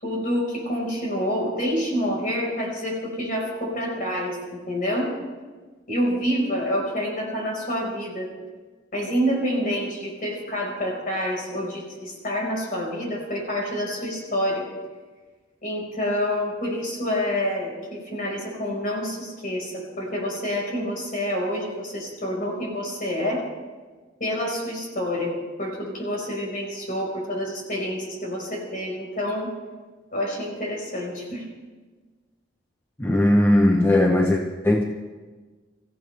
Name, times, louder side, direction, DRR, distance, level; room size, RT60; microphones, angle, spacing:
voice 1, 0.0-5.1 5.9-8.3 8.9-14.7 15.6-23.4 24.2-25.3 25.6-29.5 30.1-31.5, equal, 45° left, -1 dB, 4.8 m, -27 dB
voice 2, 33.0-34.8, left 1 dB, 15° left, 1 dB, 0.8 m, -19 dB
24.5 x 15.0 x 3.4 m, 1.4 s
head